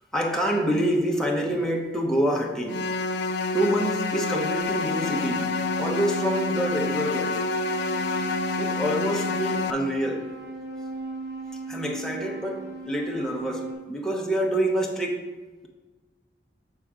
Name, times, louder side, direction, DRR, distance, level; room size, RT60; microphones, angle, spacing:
voice 1, 0.1-2.9 3.5-7.4 8.6-10.3 11.7-15.3, right 1 dB, 5° left, 0.7 m, -27 dB
sound 1, 2.7-9.7, left 4 dB, 75° left, 0.4 m, -28 dB
sound 2, 4.6-13.7, right 3 dB, 80° right, 2.2 m, -36 dB
7.4 x 3.4 x 4.8 m
head